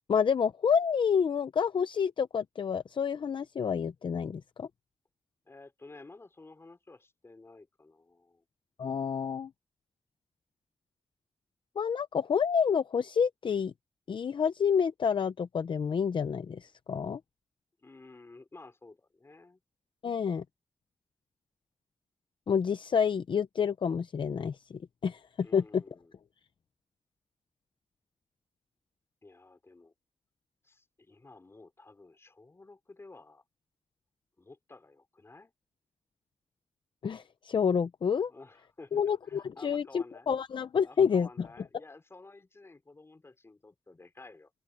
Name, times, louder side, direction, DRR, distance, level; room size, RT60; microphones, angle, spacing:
voice 1, 0.1-4.7 8.8-9.5 11.8-13.7 14.1-17.2 20.0-20.4 22.5-25.2 25.5-25.8 37.0-38.3 38.9-41.5, left 7 dB, 60° left, 0.6 m, -28 dB
voice 2, 5.4-8.4 17.8-19.6 25.4-26.1 29.2-29.9 30.6-33.4 34.4-35.5 38.3-40.3 40.8-44.5, left 3 dB, 25° left, 4.6 m, -53 dB
open air
wide cardioid pair, 170°, 10 cm